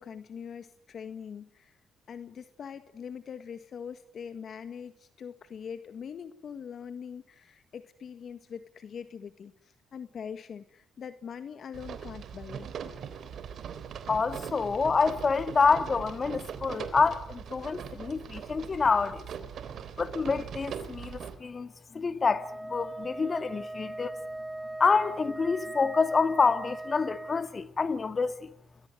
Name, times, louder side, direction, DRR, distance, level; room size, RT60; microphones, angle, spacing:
voice 1, 0.0-1.8 2.1-9.5 9.9-12.7, left 7 dB, 55° left, 1.6 m, -42 dB
sound 1, 11.7-21.4, right 7 dB, 65° right, 3.5 m, -41 dB
voice 2, 14.1-19.3 20.0-24.2 24.8-28.5, left 4 dB, 35° left, 1.9 m, -27 dB
Wind instrument woodwind instrument, 22.2-27.5, right 1 dB, 10° right, 1.1 m, -39 dB
29.5 x 21.5 x 9.3 m
cardioid pair, 90°, 0 cm